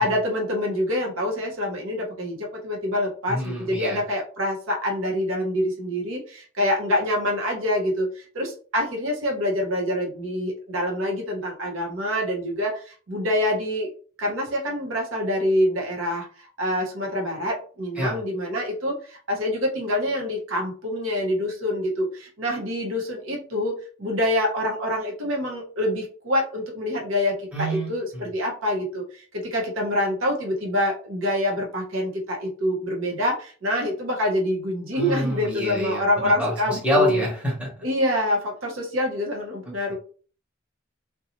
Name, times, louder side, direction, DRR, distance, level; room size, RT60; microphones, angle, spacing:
voice 1, 0.0-13.9 14.2-37.2 37.8-40.0, left 1 dB, 90° right, 1 dB, 0.8 m, -26 dB
voice 2, 3.3-4.0 18.0-18.2 27.5-28.3 34.9-37.7, equal, 5° right, -4 dB, 1.0 m, -27 dB
2.5 x 2.2 x 2.9 m, 0.40 s
head